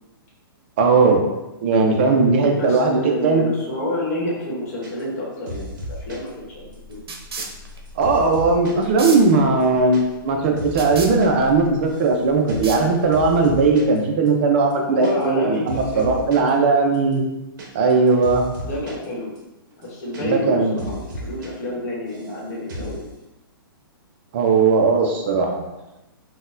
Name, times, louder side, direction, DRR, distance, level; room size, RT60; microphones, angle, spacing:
voice 1, 0.8-1.2 1.6-3.4 8.0-17.2 17.7-18.5 20.2-20.8 24.3-25.6, right 4 dB, 30° right, 2 dB, 0.4 m, -18 dB
voice 2, 2.5-7.0 14.8-16.1 18.6-19.3 19.8-23.0, left 1 dB, 40° left, -4 dB, 1.0 m, -29 dB
sound 1, 4.8-5.2 5.5-6.3 6.7-8.8 9.1-9.2 9.5-10.0 10.3-11.3 11.5-12.2 12.5-12.8 13.1-14.0 14.3-14.4 14.6-15.4 15.7-16.5 16.9-19.1 19.4-19.5 19.7-20.5 20.8-21.5 21.7-22.4 22.7-23.0, equal, 55° right, 0.9 m, -35 dB
sound 2, 5.7-13.4, right 3 dB, 85° right, 0.6 m, -37 dB
3.9 x 2.1 x 2.5 m, 1.0 s
hypercardioid pair, 165°, 12 cm